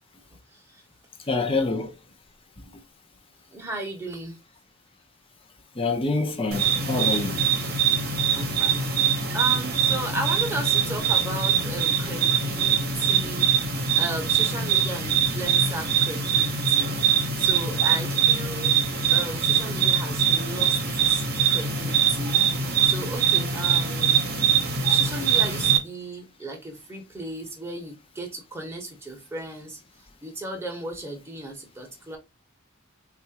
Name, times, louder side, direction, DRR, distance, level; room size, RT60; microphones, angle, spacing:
voice 1, 1.3-1.9 5.8-7.4, left 3 dB, 25° left, 0.6 m, -26 dB
voice 2, 3.5-4.4 8.2-8.9 9.3-13.5 13.9-18.7 19.1-21.2 21.5-24.2 24.9-29.8 30.2-32.2, right 2 dB, 10° right, 0.9 m, -35 dB
sound 1, 6.5-25.8, right 7 dB, 45° right, 0.9 m, -23 dB
4.2 x 2.4 x 2.8 m
head